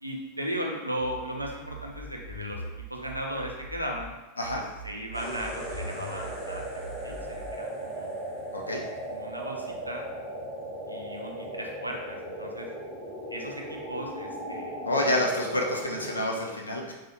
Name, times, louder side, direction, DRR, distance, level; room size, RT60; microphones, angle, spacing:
voice 1, 0.0-2.6 2.9-4.1 4.8-6.7 7.0-8.2 9.1-10.1 10.9-12.7 13.3-14.8, equal, 85° right, 1 dB, 0.5 m, -36 dB
sound 1, 1.0-4.0 4.4-7.5, right 1 dB, 40° right, 1.0 m, -42 dB
sound 2, 5.1-16.3, right 1 dB, 15° right, 1.1 m, -37 dB
voice 2, 14.9-16.9, left 1 dB, 80° left, 0 dB, 0.5 m, -28 dB
3.7 x 2.4 x 2.9 m, 1.1 s
figure-of-eight pair, 90°, 0 cm